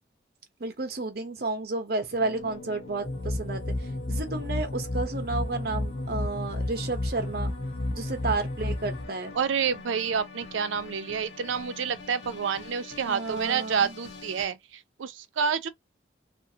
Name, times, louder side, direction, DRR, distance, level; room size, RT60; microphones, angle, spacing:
voice 1, 0.6-7.5 7.9-9.4 13.0-13.9, right 3 dB, 55° right, 0.8 m, -32 dB
sound 1, 2.2-14.5, left 2 dB, 80° left, 0.8 m, -44 dB
sound 2, 3.0-9.1, left 2 dB, 30° left, 0.4 m, -31 dB
voice 2, 9.4-15.7, right 6 dB, 85° right, 0.4 m, -29 dB
2.5 x 2.5 x 2.7 m
head